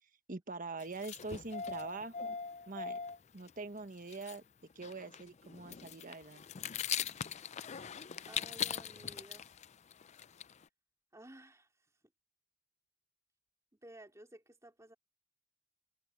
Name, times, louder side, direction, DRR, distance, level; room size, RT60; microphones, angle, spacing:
voice 1, 0.3-2.4 2.7-3.0 3.3-4.4 4.7-6.4, right 3 dB, 40° right, 1.3 m, -44 dB
sound 1, 0.8-3.2 3.5-3.6 3.8-3.9 4.1-4.4 4.7-10.6, left 8 dB, 35° left, 0.4 m, -41 dB
voice 2, 8.3-9.5 11.1-11.7 13.8-14.9, right 1 dB, 15° right, 3.4 m, -54 dB
head